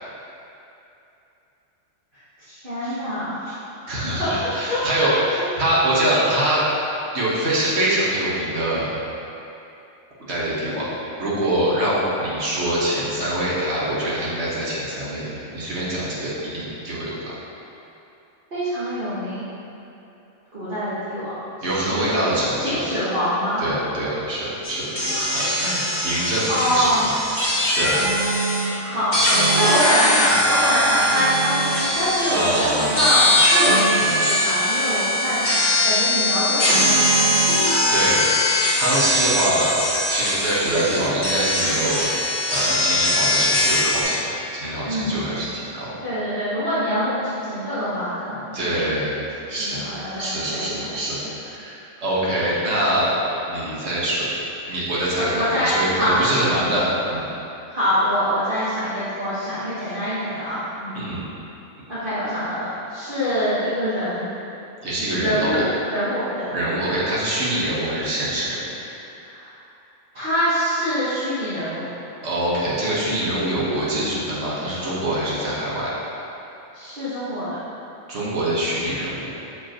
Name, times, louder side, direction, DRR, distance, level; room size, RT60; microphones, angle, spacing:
voice 1, 2.1-3.4 4.0-5.5 18.5-19.4 20.5-22.2 22.6-23.6 26.5-27.0 28.8-29.2 29.5-37.4 44.8-45.3 46.0-49.0 49.6-51.1 55.3-56.2 57.7-61.1 61.9-64.3 65.2-66.5 69.2-69.5 70.1-71.9 76.7-77.6, equal, 45° right, -15 dB, 1.4 m, -25 dB
voice 2, 3.9-6.7 7.1-8.9 10.3-10.9 11.2-17.3 21.6-22.8 23.6-26.9 27.4-28.0 31.0-31.1 32.3-32.9 37.9-38.3 38.5-44.2 44.5-45.9 48.5-49.1 49.5-49.8 50.2-54.3 54.7-57.3 60.9-61.2 64.8-65.6 66.5-68.7 72.2-75.9 78.1-79.3, right 1 dB, 60° right, -7 dB, 1.5 m, -24 dB
sound 1, 24.6-28.7 29.1-44.0, left 1 dB, 40° left, 1.4 m, -21 dB
6.4 x 5.1 x 2.9 m, 2.8 s
omnidirectional pair, 1.3 m